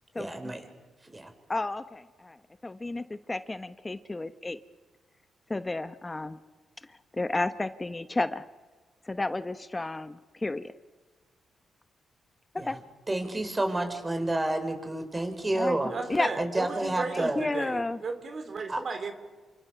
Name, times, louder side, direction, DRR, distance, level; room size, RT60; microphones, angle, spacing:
voice 1, 0.2-0.7 1.0-1.3 12.6-12.8 13.1-15.9 16.3-17.4 18.7-18.8, right 1 dB, 25° right, 6 dB, 5.6 m, -30 dB
voice 2, 1.5-2.4 2.6-4.6 5.5-6.4 7.1-8.4 9.1-10.7 12.7-12.8 15.5-15.8 16.1-16.3 17.1-18.0, left 2 dB, 25° left, 11 dB, 1.0 m, -31 dB
voice 3, 15.9-19.1, right 4 dB, 55° right, 7 dB, 4.1 m, -35 dB
28.5 x 25.5 x 7.0 m, 1.4 s
supercardioid pair, 60°, 0 cm